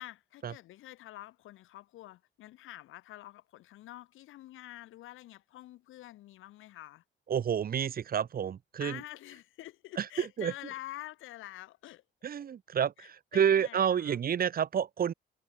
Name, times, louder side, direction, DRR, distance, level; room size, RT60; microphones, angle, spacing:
voice 1, 0.0-7.0 8.8-12.0 13.0-14.2, left 15 dB, 90° left, 3.6 m, -47 dB
voice 2, 7.3-9.0 10.0-10.5 12.2-15.1, right 8 dB, 50° right, 1.1 m, -29 dB
cardioid pair, 90°, 20 cm